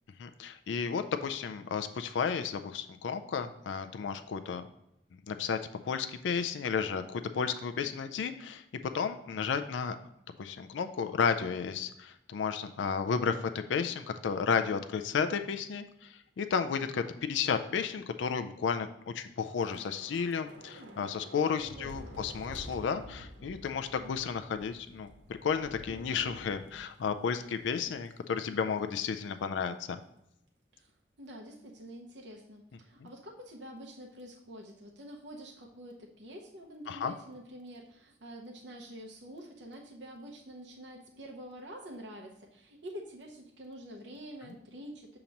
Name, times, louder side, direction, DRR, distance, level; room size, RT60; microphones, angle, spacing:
voice 1, 0.2-4.6 5.1-5.6 5.8-8.6 8.9-10.0 10.4-25.1 25.4-30.0 36.9-37.1, left 6 dB, 80° left, 8 dB, 0.4 m, -32 dB
Thunder / Rain, 19.6-28.1 28.4-28.6 29.0-29.2, equal, 90° right, 1.1 m, -50 dB
voice 2, 20.7-21.2 21.5-22.2 30.7-30.9 31.2-45.2, equal, 70° right, 0 dB, 0.7 m, -47 dB
7.0 x 2.9 x 5.1 m, 0.82 s
head